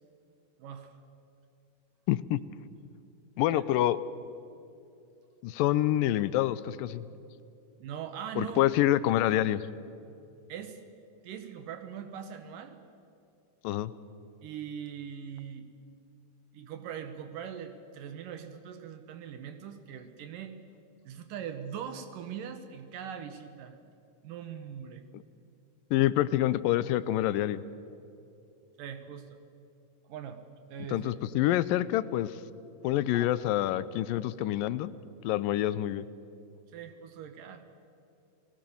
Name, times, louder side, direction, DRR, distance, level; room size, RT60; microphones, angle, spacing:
voice 1, 0.6-1.0 3.5-3.6 7.8-8.7 10.5-10.8 11.2-12.8 14.4-15.7 16.5-20.6 21.1-23.8 24.2-25.0 28.8-29.3 30.0-30.4 30.7-31.1 33.1-33.5 36.7-37.7, right 8 dB, 75° right, 8 dB, 2.8 m, -41 dB
voice 2, 2.1-2.4 3.4-4.0 5.4-7.0 8.4-9.6 13.6-13.9 25.1-25.2 25.9-27.6 30.9-32.3 32.8-34.9 35.2-36.1, left 13 dB, 90° left, 16 dB, 2.4 m, -27 dB
30.0 x 19.5 x 7.1 m, 2.7 s
omnidirectional pair, 3.9 m